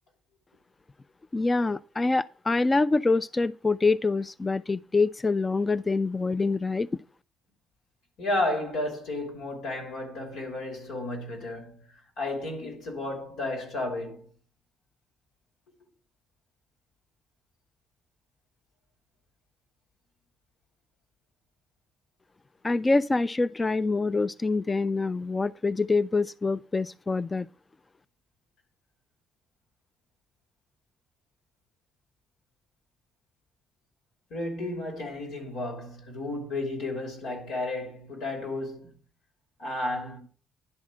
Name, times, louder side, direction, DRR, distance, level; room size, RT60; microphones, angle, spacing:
voice 1, 1.3-7.0 22.6-27.5, left 3 dB, 25° left, 0.3 m, -25 dB
voice 2, 8.2-11.8 12.2-14.3 34.3-39.0 39.6-40.2, left 2 dB, 90° left, 3.1 m, -32 dB
10.5 x 3.7 x 7.4 m
cardioid pair, 90°, 0 cm